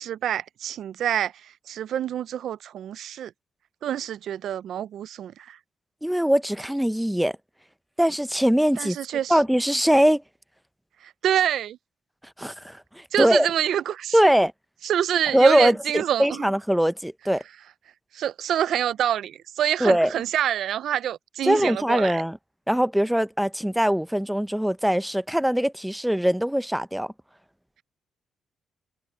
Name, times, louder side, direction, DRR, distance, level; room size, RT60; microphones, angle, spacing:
voice 1, 0.0-3.3 3.8-5.6 8.8-9.4 11.0-11.8 13.1-14.2 14.8-16.5 18.1-22.2, right 10 dB, 70° right, 0.5 m, -27 dB
voice 2, 6.0-7.4 8.0-9.0 9.3-10.2 12.4-13.5 14.1-14.5 15.3-17.4 19.8-20.1 21.4-22.4 22.7-27.1, equal, 5° right, 0.6 m, -22 dB
cardioid pair, 90°, 0 cm